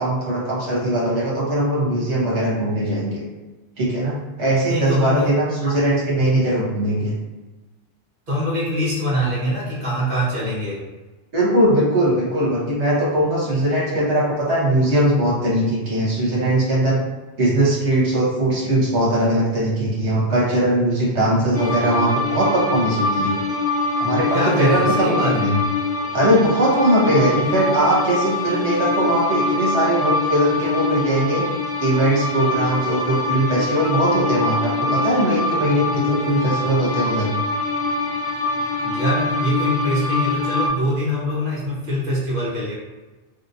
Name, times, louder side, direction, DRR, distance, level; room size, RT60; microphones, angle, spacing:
voice 1, 0.0-3.2 3.8-7.1 11.3-17.0 17.4-23.4 24.0-25.6 26.1-31.4 31.8-37.3, right 1 dB, 80° right, -6 dB, 1.3 m, -20 dB
voice 2, 4.7-5.3 5.6-5.8 8.3-10.8 24.3-25.6 38.8-42.7, equal, 50° right, -7 dB, 1.3 m, -24 dB
sound 1, 21.5-40.7, left 3 dB, 60° left, 1.2 m, -24 dB
3.3 x 2.9 x 2.6 m, 1.2 s
omnidirectional pair, 1.1 m